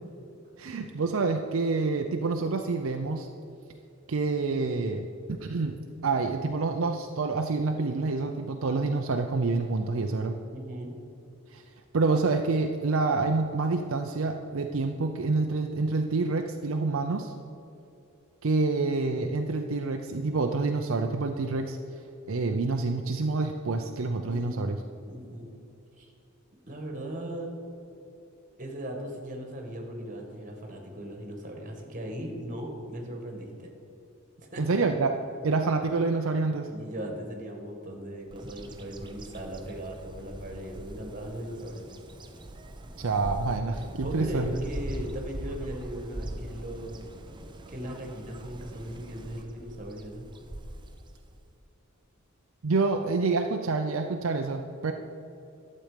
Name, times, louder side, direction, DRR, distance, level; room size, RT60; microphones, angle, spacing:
voice 1, 0.6-3.3 4.1-10.4 11.5-11.6 11.9-17.3 18.4-21.8 22.3-24.8 34.6-35.2 35.4-36.7 43.0-44.6 52.6-54.9, right 3 dB, 70° right, 4 dB, 0.6 m, -27 dB
voice 2, 10.5-10.9 24.2-24.7 25.1-25.5 26.0-26.1 26.7-27.5 28.6-33.7 34.4-34.8 36.7-41.9 44.0-47.0 47.7-50.3, right 1 dB, 40° right, 2 dB, 1.9 m, -38 dB
Bird vocalization bird call bird song, 38.3-51.6, right 1 dB, 20° right, 0.7 m, -41 dB
12.0 x 7.7 x 5.1 m, 2.8 s
head